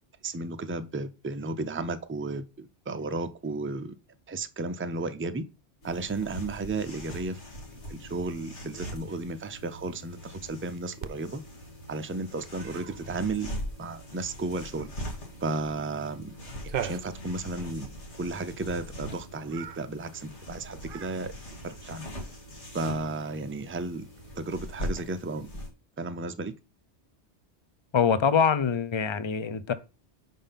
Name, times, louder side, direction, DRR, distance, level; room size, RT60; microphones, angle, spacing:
voice 1, 0.2-3.9 4.3-5.4 5.8-7.4 7.9-11.4 11.9-13.5 13.8-14.9 15.4-16.4 16.8-17.9 18.2-21.3 21.6-22.1 22.7-24.1 24.3-25.5 26.0-26.5, right 3 dB, 20° right, 0.3 m, -33 dB
sound 1, 5.8-25.7, equal, 80° left, 2.2 m, -42 dB
Cat, 11.0-24.7, right 9 dB, 60° right, 0.7 m, -45 dB
voice 2, 27.9-29.7, left 6 dB, 35° left, 0.5 m, -24 dB
5.4 x 5.3 x 5.7 m
omnidirectional pair, 1.2 m